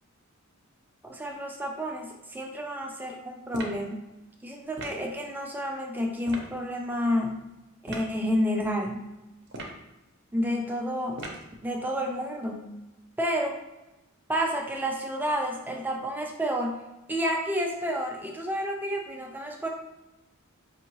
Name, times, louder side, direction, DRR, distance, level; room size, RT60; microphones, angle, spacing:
voice 1, 1.0-4.0 4.4-7.4 7.8-9.1 10.3-11.2 11.6-12.7 13.2-13.6 14.3-16.8 17.1-19.7, equal, 10° right, 2 dB, 0.5 m, -30 dB
sound 1, 3.5-3.9 4.8-5.1 6.2-6.5 7.8-8.1 9.5-9.9 11.2-11.5, right 2 dB, 50° right, 0.8 m, -39 dB
5.7 x 2.7 x 3.0 m, 1.0 s
head